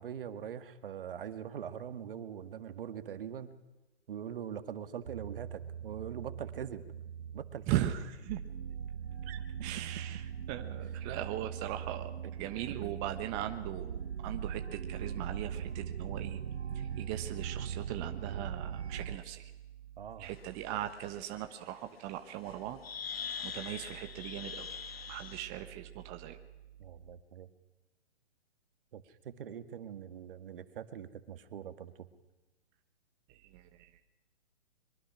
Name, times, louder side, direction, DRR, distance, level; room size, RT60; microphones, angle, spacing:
voice 1, 0.0-3.6 4.1-6.8 7.3-7.9 11.0-11.1 12.7-13.0 20.0-20.3 26.8-27.5 28.9-31.9, right 8 dB, 55° right, 10 dB, 1.8 m, -42 dB
sound 1, 5.1-19.2, right 8 dB, 75° right, 0.8 m, -40 dB
voice 2, 7.7-8.4 9.3-10.2 10.5-12.1 12.4-16.4 16.7-19.4 20.2-22.8 23.4-24.7 25.1-26.4 33.5-33.9, right 12 dB, 25° right, 7 dB, 1.2 m, -39 dB
sound 2, 20.3-20.4 20.9-21.0 22.5-22.6 22.8-25.5, left 7 dB, 65° left, 2.0 m, -42 dB
23.5 x 23.5 x 6.1 m, 1.1 s
hypercardioid pair, 135°, 33 cm